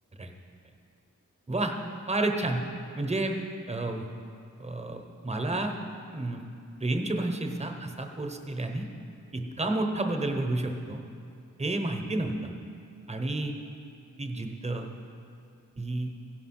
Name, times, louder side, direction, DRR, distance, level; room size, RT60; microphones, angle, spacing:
voice 1, 2.1-2.6 3.0-3.4 3.7-4.0 4.6-5.7 6.1-6.4 6.8-8.9 9.3-11.0 11.6-12.5 13.1-13.5 14.2-14.9 15.8-16.1, right 2 dB, 20° right, 4 dB, 0.9 m, -30 dB
16.0 x 5.5 x 5.9 m, 2.5 s
wide cardioid pair, 125°, 31 cm